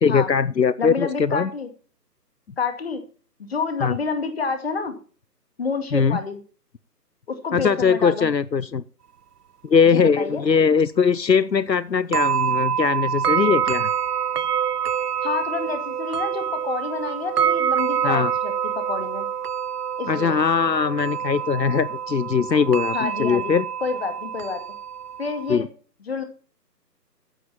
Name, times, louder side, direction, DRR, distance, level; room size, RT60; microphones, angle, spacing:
voice 1, 0.0-1.5 3.8-3.9 5.9-6.2 7.5-8.8 9.6-13.9 18.0-18.3 20.1-23.6 25.5-25.6, left 6 dB, 80° left, 18 dB, 0.9 m, -20 dB
voice 2, 0.8-1.7 2.6-3.0 3.5-4.9 5.6-6.4 7.3-8.3 9.9-10.4 15.2-19.3 20.0-20.4 22.9-23.5 23.8-24.6 25.2-25.7 26.1-26.2, left 4 dB, 35° left, 8 dB, 2.4 m, -28 dB
sound 1, 12.1-25.6, right 8 dB, 70° right, 0.6 m, -26 dB
15.5 x 10.0 x 4.3 m, 0.40 s
figure-of-eight pair, 150°, 49 cm